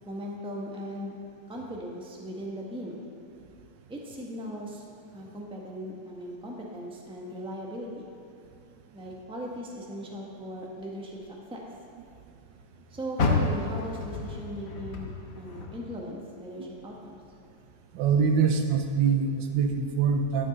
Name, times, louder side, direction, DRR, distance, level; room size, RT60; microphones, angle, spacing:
voice 1, 0.0-1.2 1.5-3.0 3.9-4.8 5.1-8.0 8.9-11.2 11.5-11.6 12.9-15.1 15.3-17.2, equal, 5° right, -2 dB, 0.8 m, -38 dB
Car, 13.1-16.4 16.8-18.2 18.7-18.8 19.4-19.5, left 3 dB, 55° left, 1.2 m, -31 dB
voice 2, 17.9-20.5, right 6 dB, 85° right, 5 dB, 1.4 m, -24 dB
11.5 x 8.1 x 4.0 m, 2.4 s
omnidirectional pair, 1.9 m